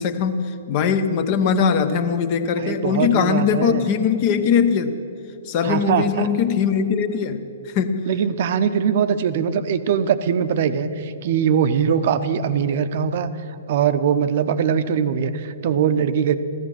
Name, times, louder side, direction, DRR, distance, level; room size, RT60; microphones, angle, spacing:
voice 1, 0.0-5.0 5.4-8.1 9.3-9.4, left 6 dB, 40° left, 10 dB, 1.0 m, -21 dB
voice 2, 2.6-3.8 5.6-6.3 8.1-13.3 13.7-16.4, right 7 dB, 50° right, 11 dB, 0.8 m, -21 dB
15.0 x 13.5 x 6.2 m, 2.9 s
figure-of-eight pair, 125°, 0 cm